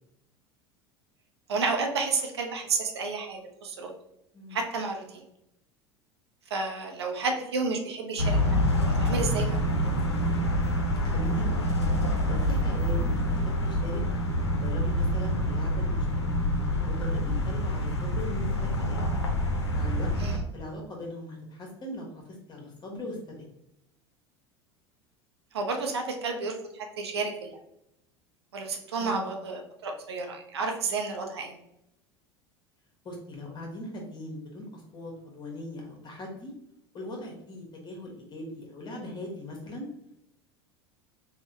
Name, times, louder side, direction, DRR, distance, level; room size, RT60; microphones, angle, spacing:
voice 1, 1.5-3.9 4.5-5.2 6.5-8.4 9.0-9.9 20.2-20.4 25.5-27.6 28.5-31.6, right 4 dB, 80° right, 3 dB, 0.5 m, -31 dB
sound 1, 8.2-20.4, equal, 85° left, 0.5 m, -26 dB
voice 2, 11.0-11.6 12.2-14.0 14.6-16.2 16.8-19.0 19.7-20.1 20.5-22.2 22.5-23.4 29.0-29.3 33.0-36.5 36.9-39.9, left 1 dB, 30° left, 0 dB, 1.2 m, -40 dB
3.4 x 2.2 x 2.7 m, 0.82 s
figure-of-eight pair, 75°, 14 cm